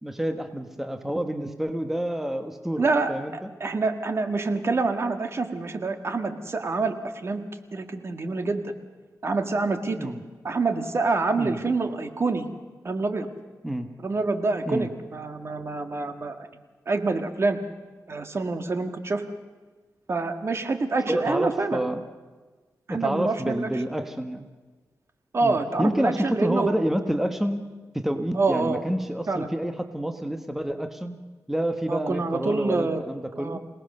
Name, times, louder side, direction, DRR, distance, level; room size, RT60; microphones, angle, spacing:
voice 1, 0.0-3.5 10.0-10.2 11.4-11.6 13.6-13.9 14.6-14.9 21.1-22.0 22.9-24.5 25.4-27.6 27.9-31.2 31.5-33.6, right 1 dB, 5° right, 7 dB, 1.2 m, -28 dB
voice 2, 2.8-7.4 7.7-8.7 9.2-10.1 10.4-12.5 12.8-13.3 14.0-16.5 16.9-17.6 18.1-19.2 20.1-21.8 22.9-23.7 25.3-26.8 28.3-28.8 29.3-29.5 31.9-33.0 33.4-33.6, right 3 dB, 45° right, 7 dB, 1.7 m, -26 dB
27.0 x 18.5 x 6.7 m, 1.3 s
wide cardioid pair, 115°, 6 cm